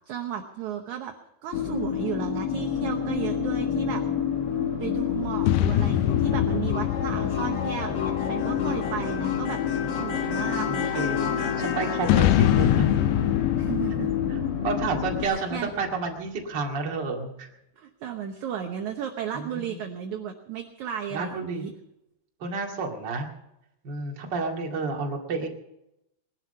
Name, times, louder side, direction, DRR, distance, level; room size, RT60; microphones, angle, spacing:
voice 1, 0.1-1.1 1.4-4.0 4.8-9.6 9.9-11.0 13.6-14.1 15.2-15.7 17.8-21.7, right 9 dB, 70° right, 4 dB, 1.8 m, -34 dB
sound 1, 1.5-15.2, left 8 dB, 50° left, 1.8 m, -28 dB
sound 2, 5.4-9.1 12.0-15.8, left 12 dB, 85° left, 2.7 m, -25 dB
voice 2, 10.7-12.9 14.3-17.5 19.3-19.8 21.1-21.6 22.4-23.3 23.8-25.5, right 4 dB, 35° right, 1 dB, 2.0 m, -31 dB
20.0 x 12.0 x 5.5 m, 0.87 s
omnidirectional pair, 4.6 m